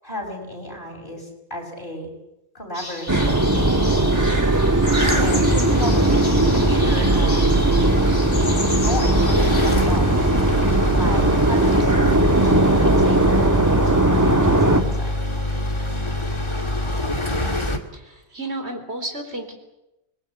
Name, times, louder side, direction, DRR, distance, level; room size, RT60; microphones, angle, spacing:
voice 1, 0.0-2.1 2.5-3.9 5.1-7.6 8.7-10.3 10.9-15.2, equal, 50° left, 2 dB, 5.9 m, -34 dB
sound 1, 2.7-9.8, left 2 dB, 70° left, 3.7 m, -33 dB
sound 2, 3.1-14.8, right 2 dB, 15° right, 1.9 m, -18 dB
sound 3, 5.0-17.8, left 1 dB, 25° left, 2.2 m, -25 dB
voice 2, 17.9-19.5, right 1 dB, 70° right, 6 dB, 4.3 m, -32 dB
26.0 x 21.0 x 8.1 m, 0.92 s
omnidirectional pair, 1.1 m